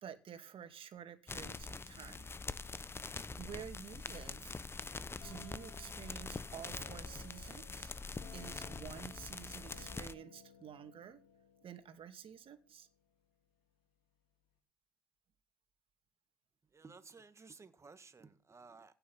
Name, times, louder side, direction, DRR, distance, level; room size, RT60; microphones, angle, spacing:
voice 1, 0.0-2.3 3.4-4.5 5.2-11.2 11.6-12.9, right 8 dB, 45° right, 2.3 m, -50 dB
sound 1, 1.3-10.1, left 4 dB, 20° left, 0.9 m, -44 dB
sound 2, 5.2-12.9, left 5 dB, 80° left, 3.8 m, -59 dB
voice 2, 16.7-18.9, right 4 dB, 25° right, 1.8 m, -56 dB
16.0 x 7.1 x 5.7 m
supercardioid pair, 80°, 12 cm